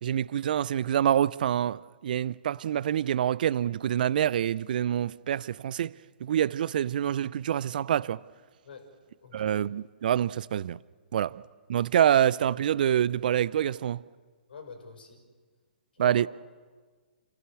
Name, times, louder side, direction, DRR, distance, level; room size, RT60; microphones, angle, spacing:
voice 1, 0.0-5.9 6.2-8.2 9.3-10.8 11.1-11.4 11.7-14.0 16.0-16.3, right 10 dB, 60° right, 0.6 m, -26 dB
voice 2, 9.2-9.5 11.1-11.2 13.7-13.8 14.5-15.2 15.9-16.2, left 5 dB, 70° left, 5.3 m, -46 dB
28.0 x 17.0 x 7.1 m
hypercardioid pair, 125°, 5 cm